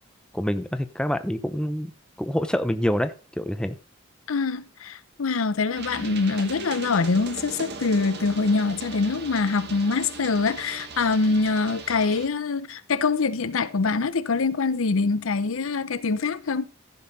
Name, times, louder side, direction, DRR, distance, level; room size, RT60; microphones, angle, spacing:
voice 1, 0.3-1.9 2.2-3.8, equal, 5° left, 0.6 m, -26 dB
voice 2, 4.3-16.6, left 4 dB, 80° left, 0.7 m, -24 dB
sound 1, 5.7-12.3, right 4 dB, 55° right, 1.5 m, -38 dB
15.0 x 5.6 x 4.0 m
head